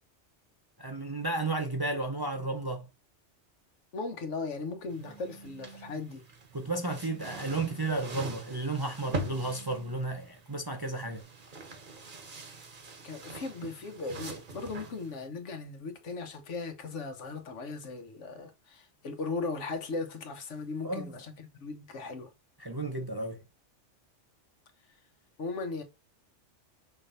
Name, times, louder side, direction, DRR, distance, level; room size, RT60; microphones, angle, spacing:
voice 1, 0.8-2.9 6.5-11.2 20.8-21.1 22.6-23.4, right 2 dB, 25° right, 0.5 m, -33 dB
voice 2, 3.9-6.2 13.0-22.3 25.4-25.8, left 3 dB, 75° left, 1.3 m, -38 dB
sound 1, 4.9-15.3, right 2 dB, 45° right, 1.1 m, -43 dB
Telephone, 5.0-6.0 7.0-8.0 9.0-10.0 11.0-11.2, right 6 dB, 75° right, 1.3 m, -52 dB
5.6 x 3.3 x 2.6 m
omnidirectional pair, 1.2 m